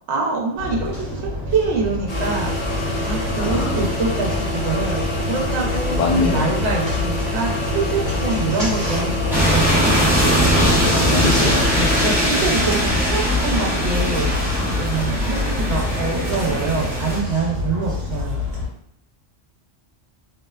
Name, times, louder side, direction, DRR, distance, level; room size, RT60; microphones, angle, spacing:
voice 1, 0.1-2.7 3.0-9.9 11.7-14.3 14.8-18.4, right 4 dB, 70° right, -1 dB, 0.8 m, -25 dB
sound 1, 0.6-18.7, left 2 dB, 40° right, 1.2 m, -27 dB
sound 2, 2.1-13.2, left 1 dB, 35° left, 0.8 m, -26 dB
voice 2, 3.4-3.9 5.9-6.6 10.9-11.7, left 3 dB, 65° left, 1 dB, 0.4 m, -23 dB
sound 3, 9.3-17.2, equal, 5° right, 0.4 m, -20 dB
2.6 x 2.1 x 2.2 m, 0.69 s
omnidirectional pair, 1.2 m